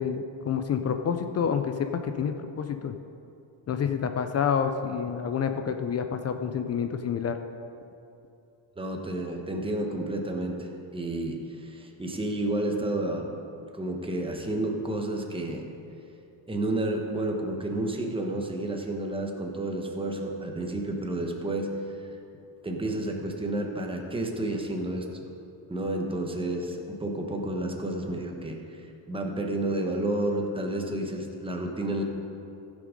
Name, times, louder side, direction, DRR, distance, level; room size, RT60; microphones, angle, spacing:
voice 1, 0.0-3.0 3.7-7.4, left 7 dB, 35° left, 7 dB, 0.4 m, -28 dB
voice 2, 8.8-13.3 13.7-15.6 16.5-21.7 22.6-25.2 25.7-32.0, right 1 dB, 10° right, 2 dB, 1.0 m, -31 dB
15.0 x 6.3 x 5.1 m, 2.7 s
cardioid pair, 145°, 47 cm